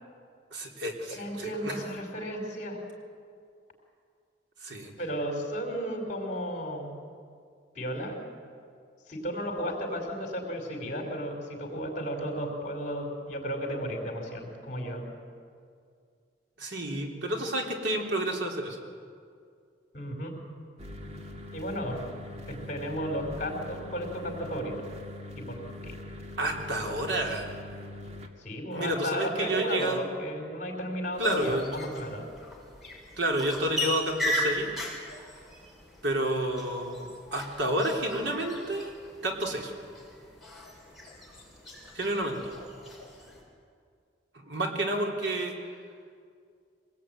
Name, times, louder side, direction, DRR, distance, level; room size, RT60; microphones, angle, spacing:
voice 1, 0.5-1.8 4.6-4.9 16.6-18.8 26.4-27.5 28.7-30.1 31.2-31.8 33.2-34.7 36.0-38.9 39.2-39.7 41.9-42.4 44.3-45.5, right 1 dB, 80° right, 1 dB, 3.6 m, -30 dB
voice 2, 1.1-2.8 5.0-6.9 7.7-8.2 9.1-15.0 19.9-20.4 21.5-22.1 22.5-24.9 25.4-26.0 28.4-32.3, equal, 45° left, 3 dB, 5.0 m, -34 dB
sound 1, 20.8-28.3, left 1 dB, 35° right, 2.0 m, -43 dB
sound 2, 31.1-43.4, left 1 dB, ahead, 6.6 m, -38 dB
24.0 x 19.0 x 9.4 m, 2.2 s
head